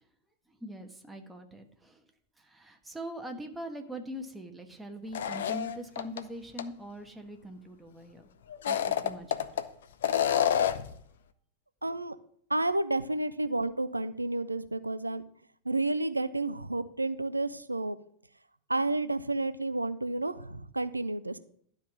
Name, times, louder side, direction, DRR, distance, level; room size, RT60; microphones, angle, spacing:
voice 1, 0.5-2.0 2.4-8.3 8.6-9.6, equal, 5° right, 3 dB, 1.4 m, -42 dB
sound 1, 5.1-6.2 6.6-6.7 8.5-9.6 10.0-10.9, left 9 dB, 60° left, 0.7 m, -28 dB
voice 2, 11.8-12.2 12.5-15.2 15.7-18.0 18.7-21.4, right 2 dB, 85° right, 13 dB, 0.6 m, -31 dB
12.0 x 5.2 x 7.4 m, 0.64 s
figure-of-eight pair, 90°, 0 cm